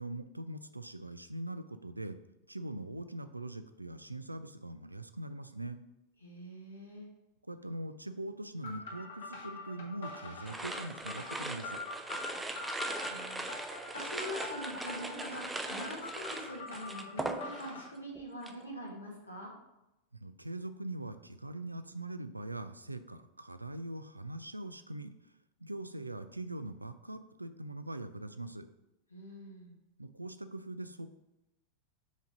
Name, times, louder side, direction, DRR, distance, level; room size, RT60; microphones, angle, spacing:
voice 1, 0.0-2.2 2.5-5.8 7.5-11.8 20.1-25.3 25.6-28.7 30.0-31.1, right 2 dB, 85° right, 10 dB, 0.4 m, -42 dB
voice 2, 6.2-7.1 12.3-19.5 29.1-29.7, equal, 80° left, -2 dB, 1.6 m, -45 dB
sound 1, 8.6-17.9, left 3 dB, 60° left, 1.3 m, -44 dB
sound 2, 10.5-17.9 18.2-18.6, right 2 dB, 10° right, 0.5 m, -40 dB
5.1 x 3.9 x 4.9 m, 0.92 s
figure-of-eight pair, 90°, 0 cm